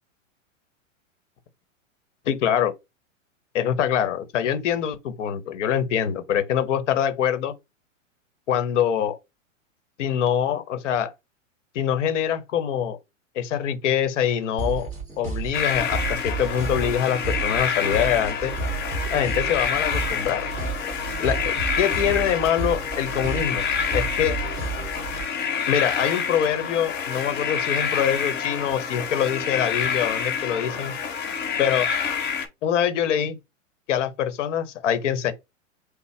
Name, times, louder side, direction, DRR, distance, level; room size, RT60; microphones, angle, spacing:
voice 1, 2.3-2.7 3.5-7.5 8.5-9.2 10.0-11.1 11.7-13.0 13.3-14.9 15.2-18.5 19.1-20.5 21.2-23.6 23.9-24.4 25.7-30.9 31.6-31.9 32.6-33.4 33.9-35.3, left 9 dB, 65° left, 1.0 m, -24 dB
sound 1, 14.6-25.2, right 4 dB, 20° right, 2.3 m, -31 dB
sound 2, 15.5-32.5, left 6 dB, 25° left, 0.9 m, -28 dB
5.5 x 2.0 x 3.2 m
hypercardioid pair, 120°, 38 cm